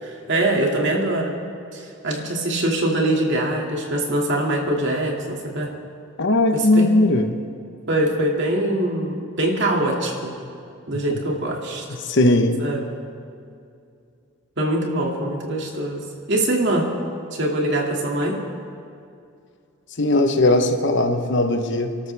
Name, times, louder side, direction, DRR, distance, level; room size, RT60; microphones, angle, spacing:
voice 1, 0.0-1.4 1.7-5.7 6.5-6.9 7.9-10.3 10.9-11.9 12.6-12.9 14.6-16.9 17.3-18.4, right 1 dB, 55° right, 0 dB, 2.3 m, -23 dB
voice 2, 6.2-7.3 12.0-12.6 20.0-22.1, left 2 dB, 55° left, 6 dB, 1.0 m, -18 dB
28.5 x 13.0 x 3.4 m, 2.5 s
head